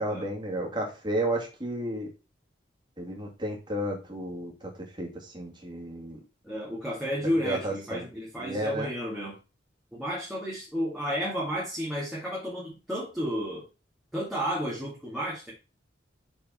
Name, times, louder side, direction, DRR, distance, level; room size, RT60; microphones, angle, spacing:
voice 1, 0.0-2.1 3.0-4.5 5.0-6.2 7.4-8.1 8.4-8.9, right 1 dB, 25° right, 0 dB, 2.4 m, -32 dB
voice 2, 6.4-9.4 9.9-13.6 14.1-15.5, equal, ahead, -6 dB, 2.1 m, -32 dB
6.3 x 6.0 x 4.2 m, 0.31 s
head